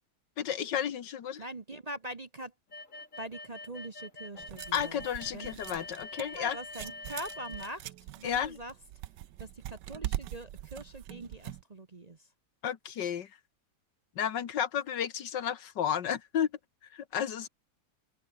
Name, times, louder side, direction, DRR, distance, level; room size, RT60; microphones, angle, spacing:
voice 1, 0.4-1.4 4.7-6.6 8.2-8.6 12.6-13.3 14.2-16.5 16.9-17.5, left 9 dB, 85° left, 2.0 m, -32 dB
voice 2, 1.4-2.5 3.2-5.0 5.3-5.6 6.1-8.7 9.4-12.3, right 1 dB, 30° right, 0.9 m, -43 dB
sound 1, 2.7-7.7, left 2 dB, 45° left, 4.6 m, -45 dB
sound 2, 4.4-11.6, right 13 dB, 85° right, 1.4 m, -42 dB
open air
omnidirectional pair, 1.8 m